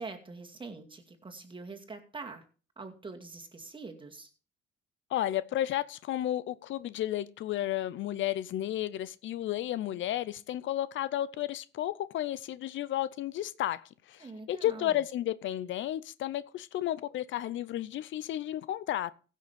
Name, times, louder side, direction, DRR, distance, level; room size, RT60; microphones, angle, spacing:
voice 1, 0.0-2.4 2.8-4.3 14.2-15.0, right 3 dB, 25° right, 2.3 m, -44 dB
voice 2, 5.1-19.1, left 12 dB, 75° left, 0.6 m, -32 dB
15.5 x 6.6 x 5.1 m
cardioid pair, 90°, 20 cm